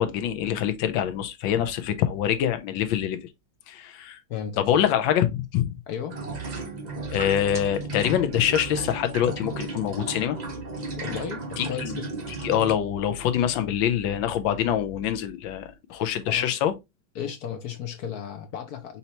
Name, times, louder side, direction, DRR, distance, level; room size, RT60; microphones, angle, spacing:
voice 1, 0.0-3.2 3.7-4.2 4.6-5.7 7.1-10.4 11.6-11.9 12.3-16.7, left 10 dB, 85° left, 1.4 m, -25 dB
voice 2, 4.3-4.8 5.9-6.2 11.0-12.1 16.2-16.6 17.1-19.0, left 8 dB, 65° left, 1.0 m, -34 dB
sound 1, 6.1-12.7, right 3 dB, 60° right, 0.4 m, -34 dB
5.4 x 2.8 x 2.9 m
omnidirectional pair, 2.1 m